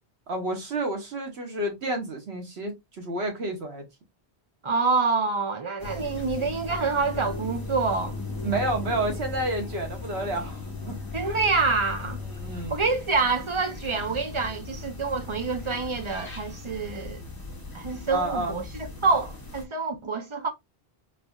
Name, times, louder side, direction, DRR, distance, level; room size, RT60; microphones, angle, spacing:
voice 1, 0.3-3.8 8.4-11.0 11.2-11.4 12.3-12.8 18.1-18.6, right 1 dB, 85° right, 1.4 m, -30 dB
voice 2, 4.6-8.2 11.1-12.2 12.7-17.2 17.7-20.5, right 4 dB, 35° right, 0.5 m, -27 dB
sound 1, 5.8-19.6, left 3 dB, 20° left, 1.2 m, -37 dB
4.0 x 2.6 x 2.2 m
omnidirectional pair, 1.0 m